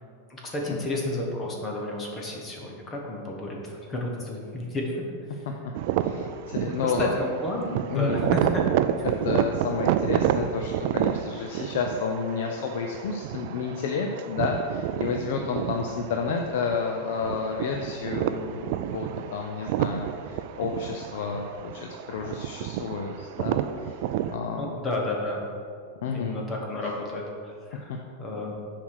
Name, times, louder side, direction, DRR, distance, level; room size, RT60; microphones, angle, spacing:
voice 1, 0.3-4.9 5.3-5.4 6.8-8.6 9.0-9.1 15.9-16.0 24.6-25.4 26.1-28.6, left 1 dB, 15° left, -1 dB, 1.1 m, -32 dB
sound 1, 5.7-24.4, right 11 dB, 45° right, 0.3 m, -30 dB
voice 2, 6.0-7.1 7.9-8.2 9.0-24.0 24.3-24.8 26.0-26.4 27.9-28.0, left 5 dB, 65° left, 2 dB, 0.6 m, -30 dB
7.3 x 4.7 x 6.5 m, 2.3 s
supercardioid pair, 165°, 0 cm